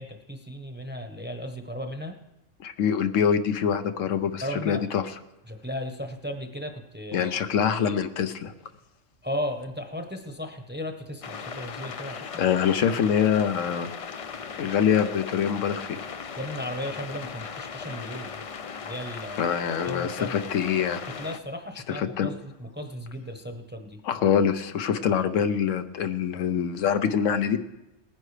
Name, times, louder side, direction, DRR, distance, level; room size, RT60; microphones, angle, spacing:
voice 1, 0.0-2.2 4.4-4.8 5.5-7.3 9.2-12.5 16.4-18.3 18.8-19.4 19.9-20.4 21.2-24.0, equal, 10° right, 5 dB, 0.8 m, -35 dB
voice 2, 2.6-5.2 7.1-8.5 12.0-13.9 14.6-16.0 19.4-21.0 21.9-22.3 24.0-27.6, left 8 dB, 85° left, 9 dB, 1.1 m, -25 dB
sound 1, 11.2-21.4, left 6 dB, 60° left, 0.3 m, -38 dB
19.0 x 10.0 x 3.3 m, 0.94 s
omnidirectional pair, 1.3 m